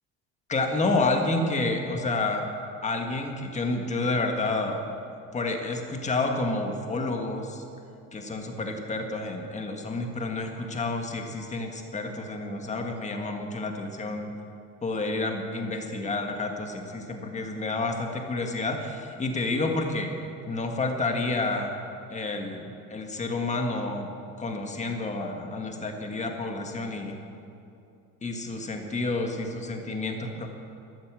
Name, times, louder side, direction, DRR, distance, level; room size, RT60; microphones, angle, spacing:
voice 1, 0.5-2.5 2.8-4.8 5.3-7.6 8.1-14.3 14.8-20.1 20.5-21.7 22.1-24.1 24.4-27.2 28.2-30.5, left 2 dB, 20° left, 3 dB, 1.7 m, -29 dB
13.0 x 12.5 x 7.7 m, 2.7 s
cardioid pair, 155°, 34 cm